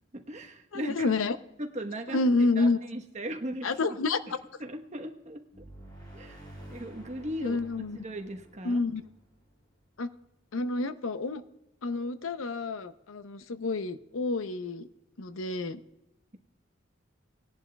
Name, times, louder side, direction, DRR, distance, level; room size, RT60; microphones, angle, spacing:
voice 1, 0.1-1.1 1.6-3.7 4.6-5.6 6.1-6.4 6.7-8.8, right 1 dB, 35° right, 4 dB, 1.1 m, -38 dB
voice 2, 0.7-1.4 2.1-2.8 3.6-4.2 7.4-8.0 8.6-9.0 10.0-10.1 10.5-11.4 11.8-14.9 15.2-15.8, left 3 dB, 90° left, 12 dB, 0.7 m, -29 dB
sound 1, 5.5-10.1, right 1 dB, 20° left, 4.3 m, -50 dB
19.0 x 11.0 x 2.3 m, 0.91 s
head